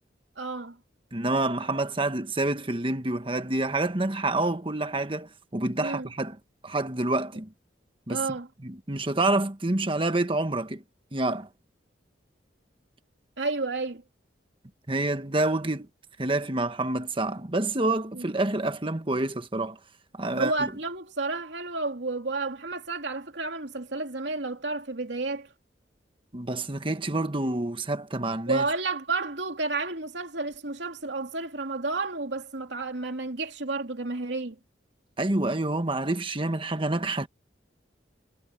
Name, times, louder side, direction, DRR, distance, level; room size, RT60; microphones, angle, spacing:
voice 1, 0.4-0.8 5.8-6.1 8.1-8.5 13.4-14.0 18.1-18.2 20.3-25.5 28.5-34.6, right 3 dB, 75° right, 2.8 m, -31 dB
voice 2, 1.1-6.4 6.6-7.5 8.1-8.2 8.6-10.8 11.1-11.5 14.9-15.9 16.2-19.8 20.2-20.7 26.3-28.6 35.2-37.3, right 2 dB, 30° right, 1.4 m, -27 dB
head